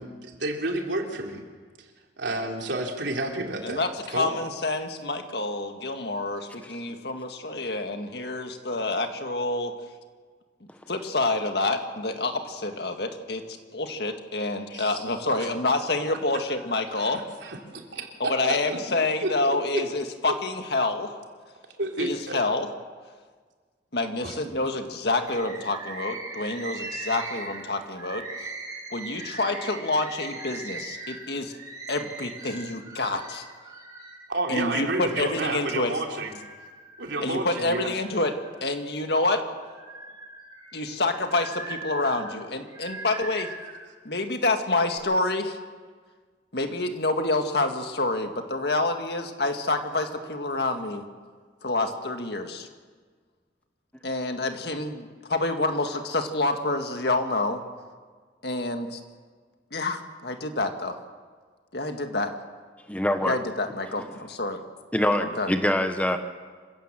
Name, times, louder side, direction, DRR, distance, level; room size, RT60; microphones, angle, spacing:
voice 1, 0.0-1.4 1.8-1.9 2.2-3.8 4.1-4.3 14.7-15.0 16.9-19.3 21.8-22.4 24.2-24.5 34.3-36.3 37.0-37.9, right 2 dB, 80° right, 1 dB, 3.3 m, -31 dB
voice 2, 3.6-9.7 10.9-17.2 18.2-21.1 22.0-22.7 23.9-28.3 28.9-31.5 31.9-33.4 34.5-35.9 37.2-39.4 40.7-43.5 44.1-45.6 46.5-51.0 51.6-52.7 54.0-57.6 58.4-59.0 59.7-61.0 61.7-62.3 63.2-64.6 65.2-65.5, left 2 dB, 60° left, 6 dB, 1.8 m, -28 dB
Bird, 25.3-34.2 34.7-35.7 36.2-37.2 37.7-39.1 39.5-43.8 44.5-45.0, right 3 dB, 20° right, 7.4 m, -40 dB
voice 3, 62.9-63.4 64.9-66.2, left 1 dB, 10° left, 7 dB, 1.1 m, -24 dB
26.5 x 16.0 x 7.5 m, 1.5 s
head